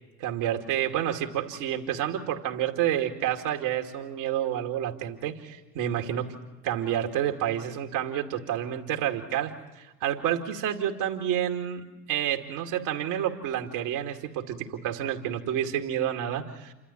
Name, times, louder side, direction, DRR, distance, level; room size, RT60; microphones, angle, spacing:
voice 1, 0.2-6.4 6.6-16.7, right 10 dB, 60° right, 3 dB, 2.5 m, -29 dB
28.5 x 13.5 x 10.0 m, 1.1 s
figure-of-eight pair, 55°, 47 cm